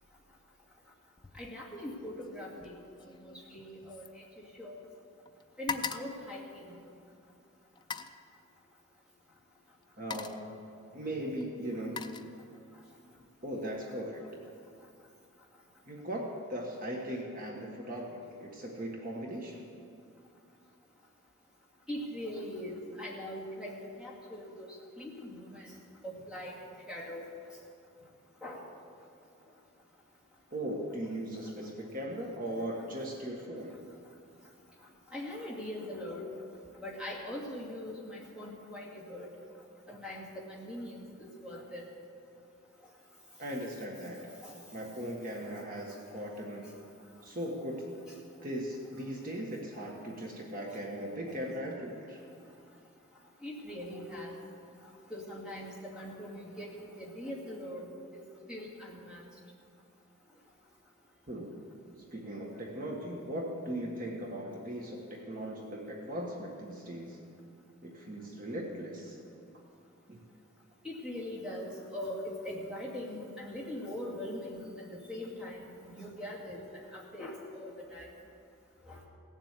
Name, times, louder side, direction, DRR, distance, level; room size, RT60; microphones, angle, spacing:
sound 1, 1.2-1.6 1.8-5.0 5.2-7.1 7.7-8.2 9.3-9.4 9.8-10.5 11.4-12.8 13.2-13.5, left 6 dB, 20° left, 0.4 m, -42 dB
voice 1, 1.3-2.8 3.2-4.2 4.6-4.8 5.6-6.8 21.9-24.5 25.0-25.8 26.0-26.5 26.9-27.3 28.4-28.6 35.1-36.3 36.8-39.3 39.9-41.9 44.4-44.5 50.7-50.8 51.3-51.4 53.4-54.3 55.1-57.9 58.1-58.2 58.5-59.2 70.8-74.6 74.9-78.1 78.9-79.0, left 1 dB, 5° right, -5 dB, 2.3 m, -41 dB
voice 2, 10.0-10.6 10.9-12.3 13.4-14.2 15.9-19.6 30.5-33.7 43.4-44.3 44.7-46.7 47.2-47.9 48.4-52.2 61.3-61.6 62.1-67.2 67.8-69.2 70.1-70.2, equal, 40° right, -1 dB, 1.4 m, -38 dB
17.5 x 7.5 x 8.2 m, 2.4 s
head